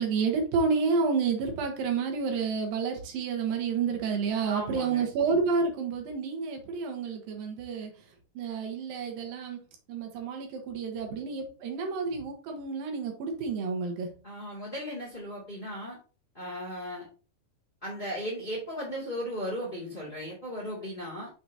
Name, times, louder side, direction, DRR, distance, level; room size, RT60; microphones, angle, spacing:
voice 1, 0.0-8.1 8.3-14.1, right 5 dB, 75° right, 3 dB, 3.0 m, -30 dB
voice 2, 4.5-5.0 14.2-16.0 16.3-17.1 17.8-21.3, equal, 15° left, -3 dB, 2.0 m, -36 dB
7.1 x 6.1 x 2.8 m, 0.35 s
omnidirectional pair, 4.2 m